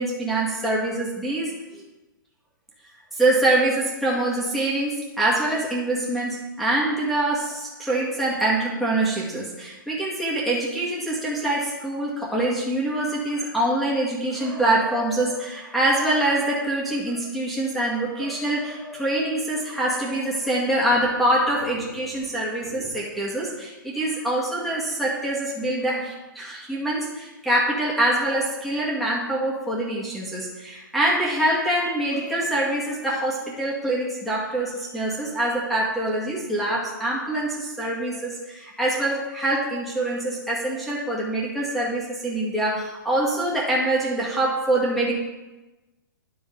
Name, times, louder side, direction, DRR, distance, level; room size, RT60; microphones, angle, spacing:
voice 1, 0.0-1.8 3.1-45.1, right 1 dB, ahead, -7 dB, 2.1 m, -25 dB
11.5 x 5.5 x 3.9 m, 1.1 s
figure-of-eight pair, 120°, 11 cm